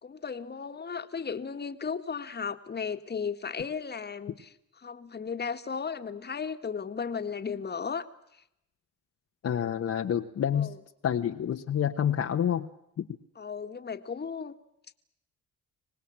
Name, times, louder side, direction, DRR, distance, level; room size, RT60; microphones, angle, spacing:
voice 1, 0.0-8.1 10.5-10.8 13.4-14.6, left 6 dB, 35° left, 8 dB, 1.9 m, -35 dB
voice 2, 9.4-10.7 11.0-12.7 13.0-13.1, left 9 dB, 55° left, 3 dB, 1.4 m, -28 dB
25.5 x 19.5 x 8.9 m, 0.81 s
cardioid pair, 90°, 30 cm